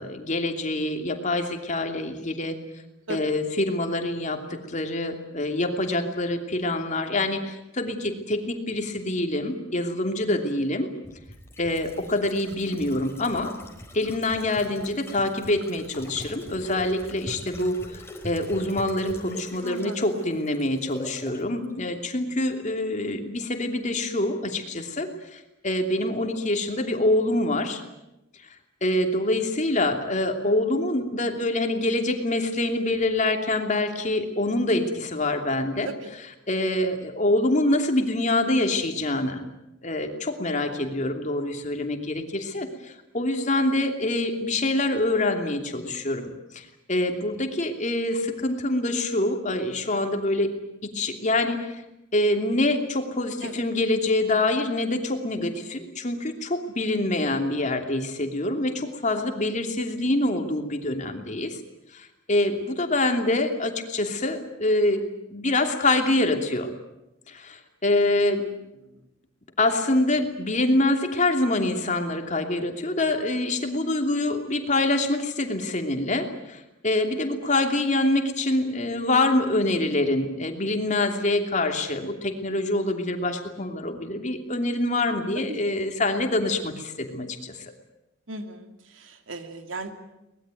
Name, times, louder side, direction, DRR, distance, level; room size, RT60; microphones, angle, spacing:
voice 1, 0.0-2.6 3.1-10.9 11.6-13.5 13.9-27.8 28.8-35.9 36.5-39.4 39.8-50.5 50.8-51.8 52.1-61.6 61.9-65.0 65.3-66.7 67.3-68.4 69.6-87.6, left 2 dB, 40° left, 5 dB, 2.9 m, -25 dB
sound 1, 11.0-21.4 21.7-21.8, left 1 dB, 15° left, 4.3 m, -42 dB
voice 2, 19.6-20.2 35.8-36.1 53.4-53.6 63.1-63.2 68.8-69.0 85.5-85.6 88.3-89.9, right 2 dB, 85° right, 6 dB, 2.7 m, -37 dB
23.5 x 20.0 x 9.2 m, 0.92 s
head